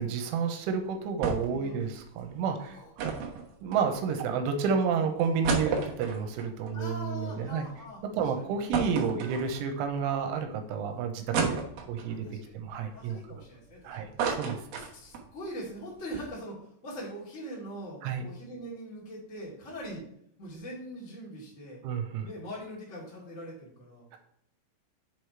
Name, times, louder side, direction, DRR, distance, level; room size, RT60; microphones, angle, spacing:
voice 1, 0.0-3.2 3.6-7.7 8.1-11.6 11.9-12.3 12.5-13.2 13.8-14.1 14.4-14.6 18.0-18.3 21.8-22.3, right 6 dB, 85° right, 6 dB, 3.3 m, -30 dB
sound 1, 1.2-1.6 1.9-2.0 3.0-4.2 4.8-4.9 5.2-7.6 8.0-8.1 8.7-9.9 10.4-10.5 11.3-12.2 12.7-13.7 14.0-15.3 15.6-15.7 16.0-16.2, right 5 dB, 70° right, 2.2 m, -32 dB
voice 2, 6.7-8.5 12.2-12.5 12.9-14.1 14.7-16.6 16.8-20.0 20.4-21.8 22.2-24.0, equal, 25° left, -7 dB, 1.8 m, -42 dB
7.1 x 4.9 x 4.6 m, 0.69 s
omnidirectional pair, 5.5 m